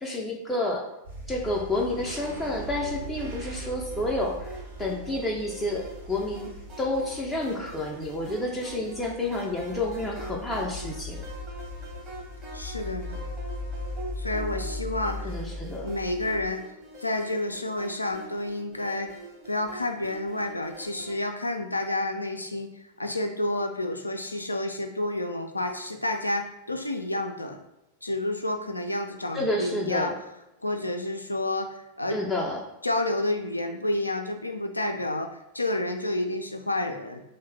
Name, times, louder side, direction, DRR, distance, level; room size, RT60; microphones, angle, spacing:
voice 1, 0.0-0.8 1.3-6.5 6.8-11.2 15.2-16.0 29.3-30.1 32.1-32.6, left 1 dB, 10° left, -3 dB, 0.4 m, -30 dB
sound 1, 1.0-16.5, left 1 dB, 80° right, 0.9 m, -39 dB
sound 2, 1.7-6.2 6.5-6.6, right 1 dB, 50° right, 0.8 m, -43 dB
sound 3, 3.9-21.1, right 2 dB, 30° right, 1.0 m, -44 dB
voice 2, 12.5-13.2 14.2-15.3 15.8-16.6 17.0-19.1 19.5-22.7 23.0-27.6 28.0-30.1 30.6-32.2 32.8-35.3 35.5-37.2, left 1 dB, 85° left, 5 dB, 0.3 m, -30 dB
3.0 x 2.1 x 3.4 m, 0.91 s
figure-of-eight pair, 90°, 0 cm